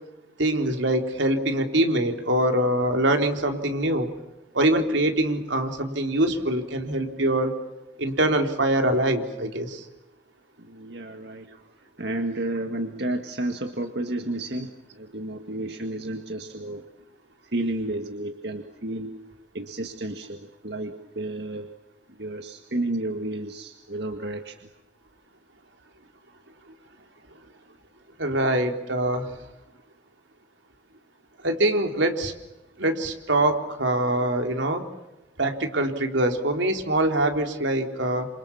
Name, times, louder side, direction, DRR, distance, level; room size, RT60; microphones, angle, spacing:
voice 1, 0.4-4.1 4.5-7.5 8.0-9.8 28.2-29.3 31.4-32.3 32.8-34.8 35.4-38.3, right 1 dB, 85° right, 4 dB, 3.8 m, -24 dB
voice 2, 10.6-11.5 12.0-16.9 17.5-19.2 19.5-21.7 22.1-24.6, right 1 dB, 65° right, 5 dB, 1.9 m, -31 dB
28.5 x 27.5 x 7.2 m, 0.93 s
head